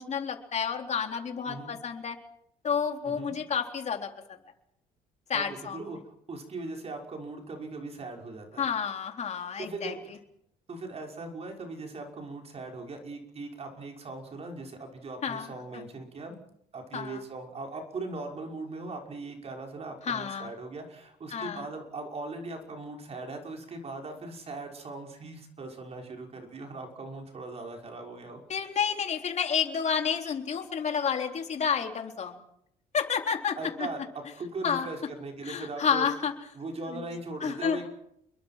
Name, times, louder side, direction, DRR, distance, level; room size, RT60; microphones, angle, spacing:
voice 1, 0.0-2.2 2.6-4.1 5.3-5.8 8.6-9.9 15.2-15.8 16.9-17.2 20.0-20.5 21.3-21.7 28.5-32.4 32.9-33.9 34.6-34.9 35.4-36.3 36.9-37.1 37.4-37.9, left 7 dB, 40° left, 4 dB, 3.9 m, -30 dB
voice 2, 1.4-1.8 3.1-3.3 5.3-5.4 5.7-8.7 9.3-10.0 10.7-16.4 16.7-28.4 33.6-34.0 34.3-36.1 36.6-37.9, right 3 dB, 35° right, 2 dB, 5.7 m, -39 dB
29.5 x 22.0 x 6.0 m, 0.75 s
cardioid pair, 110°, 17 cm